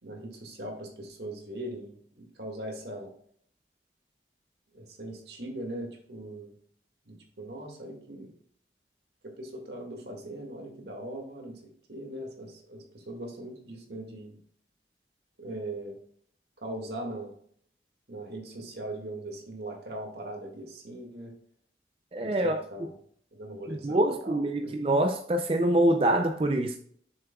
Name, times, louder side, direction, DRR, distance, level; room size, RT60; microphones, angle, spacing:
voice 1, 0.0-3.1 4.7-6.5 7.1-8.3 9.2-11.6 11.9-14.4 15.4-16.0 16.6-17.3 18.1-21.3 22.2-22.9 23.3-24.7, right 1 dB, 75° right, 2.0 m, -40 dB
voice 2, 22.1-22.6 23.7-26.8, right 1 dB, 30° right, 0.4 m, -25 dB
7.0 x 6.8 x 2.3 m
head